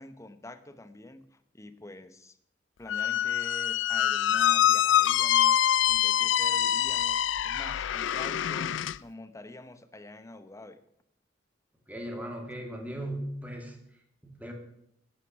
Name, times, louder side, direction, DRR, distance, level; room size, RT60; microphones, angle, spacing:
voice 1, 0.0-2.4 2.8-10.8, left 1 dB, 15° left, 11 dB, 0.9 m, -46 dB
Squeak, 2.9-9.0, left 10 dB, 85° left, 0.4 m, -25 dB
voice 2, 11.9-13.8 14.2-14.5, right 1 dB, 10° right, 2 dB, 2.5 m, -37 dB
11.0 x 10.5 x 7.5 m, 0.74 s
head